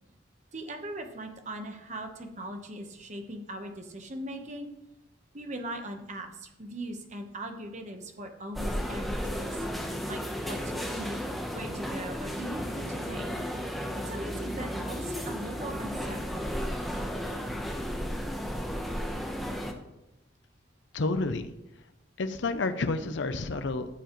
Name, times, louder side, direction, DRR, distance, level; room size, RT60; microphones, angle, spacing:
voice 1, 0.5-4.7 5.3-9.7 10.1-11.2 11.5-13.3 13.8-16.6, right 1 dB, 35° right, 5 dB, 1.1 m, -40 dB
sound 1, 8.5-19.7, equal, ahead, 0.9 m, -34 dB
voice 2, 20.9-21.5 22.2-23.9, left 3 dB, 65° left, 9 dB, 0.6 m, -29 dB
14.5 x 7.0 x 3.1 m, 0.93 s
head